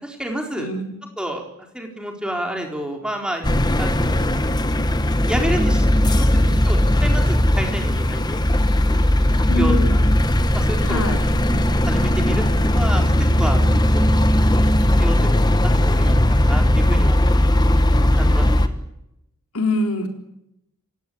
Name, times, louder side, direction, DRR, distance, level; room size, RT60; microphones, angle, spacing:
voice 1, 0.0-0.7 1.2-1.4 1.7-3.4 3.7-4.4 5.3-8.4 8.9-10.0 10.5-11.3 11.9-13.1 13.4-13.7 13.9-14.1 15.0-15.2 15.8-17.2 18.1-18.8, right 1 dB, 5° right, 2 dB, 4.0 m, -29 dB
voice 2, 0.6-0.9 9.5-10.0 10.8-11.2 19.5-20.1, left 1 dB, 80° left, 4 dB, 4.1 m, -23 dB
sound 1, 3.4-18.7, left 1 dB, 20° left, 1.2 m, -18 dB
28.5 x 16.0 x 8.7 m, 0.84 s
head